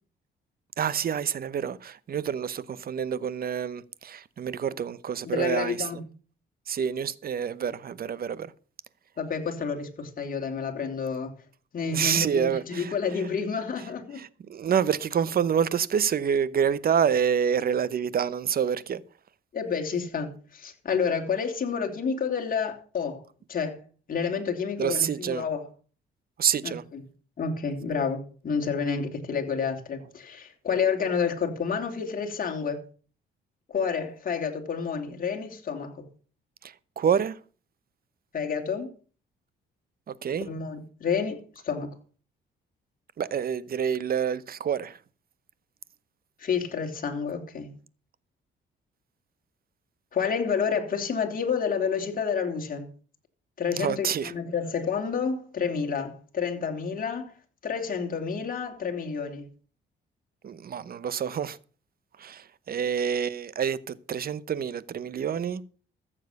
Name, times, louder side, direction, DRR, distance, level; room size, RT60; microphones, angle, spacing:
voice 1, 0.8-5.8 6.7-8.5 11.9-12.9 14.2-19.0 24.8-25.4 26.4-26.8 36.6-37.4 40.1-40.5 43.2-45.0 53.8-54.3 60.4-61.6 62.2-65.6, right 8 dB, 50° right, 0.9 m, -27 dB
voice 2, 5.2-6.0 9.2-11.3 11.7-14.2 19.5-23.2 23.5-23.8 24.1-25.7 26.6-27.0 27.4-32.8 33.7-36.1 38.3-38.9 40.4-41.9 46.4-47.7 50.1-52.9 53.6-57.3 57.6-59.5, left 6 dB, 45° left, 3.0 m, -29 dB
14.5 x 7.4 x 6.6 m
cardioid pair, 90°, 20 cm